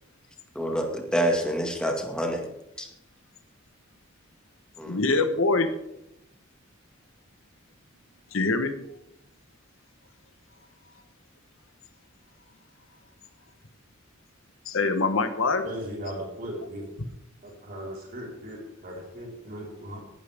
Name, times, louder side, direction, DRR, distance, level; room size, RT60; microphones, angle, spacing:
voice 1, 0.6-2.4 2.8-2.9 4.8-5.2, equal, 5° left, 2 dB, 2.0 m, -27 dB
voice 2, 4.9-5.7 8.3-8.8 14.7-15.6, left 3 dB, 75° left, 9 dB, 1.3 m, -24 dB
voice 3, 15.6-16.9 17.4-20.0, equal, 45° right, -3 dB, 4.5 m, -38 dB
17.5 x 12.5 x 3.6 m, 0.85 s
head